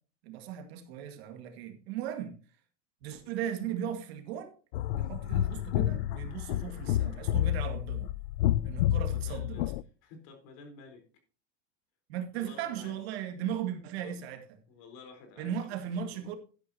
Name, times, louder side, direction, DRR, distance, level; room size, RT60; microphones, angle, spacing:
voice 1, 0.2-2.4 3.0-4.5 5.0-8.1 8.6-9.7 12.1-14.6 15.4-16.4, right 9 dB, 60° right, 2.0 m, -37 dB
sound 1, 4.7-9.8, left 13 dB, 65° left, 0.6 m, -29 dB
voice 2, 9.0-9.7 10.0-11.0 12.3-13.0 14.0-14.2 14.7-15.6 16.0-16.3, left 4 dB, 45° left, 4.1 m, -51 dB
12.5 x 11.0 x 2.8 m
supercardioid pair, 170°, 35 cm